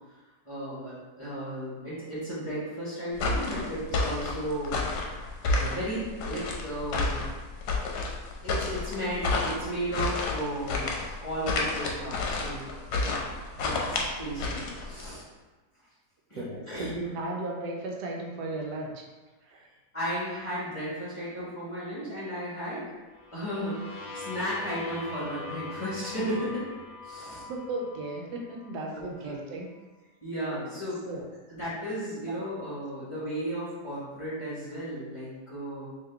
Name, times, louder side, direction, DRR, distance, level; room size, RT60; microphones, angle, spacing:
voice 1, 0.4-4.8 5.4-7.3 8.4-10.9 11.2-12.6 13.0-13.2 13.6-15.2 16.3-16.9 19.9-22.9 23.3-26.6 27.0-27.4 28.9-29.4 30.2-31.1 31.5-35.9, equal, 20° left, -10 dB, 1.2 m, -34 dB
sound 1, 3.1-15.1, left 3 dB, 75° left, 1.2 m, -30 dB
voice 2, 16.4-19.0 19.5-19.6 27.5-29.7 31.1-31.2, right 2 dB, 80° right, 0 dB, 1.2 m, -35 dB
sound 2, 23.1-28.9, left 4 dB, 45° left, 0.6 m, -42 dB
3.6 x 3.0 x 3.4 m, 1.2 s
omnidirectional pair, 1.8 m